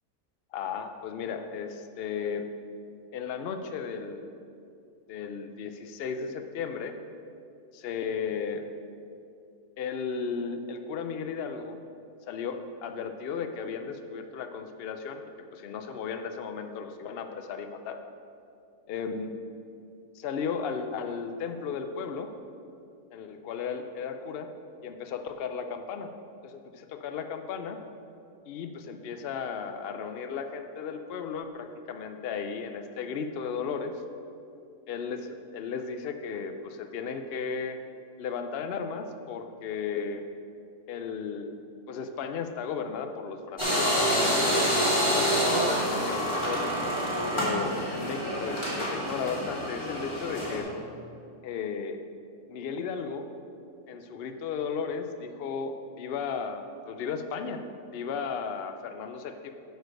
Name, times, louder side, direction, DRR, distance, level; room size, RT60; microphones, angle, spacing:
voice 1, 0.5-2.5 3.1-4.3 5.1-6.9 7.7-8.6 9.8-11.8 12.3-15.2 15.5-18.0 18.9-19.3 20.1-22.3 23.1-24.5 24.8-26.1 26.4-27.8 28.5-33.9 34.9-37.8 38.2-40.2 40.9-41.6 41.9-46.7 47.3-50.7 51.4-52.0 52.5-53.3 53.9-57.6 57.9-59.5, left 6 dB, 75° left, 7 dB, 0.5 m, -35 dB
sound 1, 43.6-50.6, equal, 20° left, 2.3 m, -27 dB
9.3 x 4.6 x 6.3 m, 2.6 s
omnidirectional pair, 1.7 m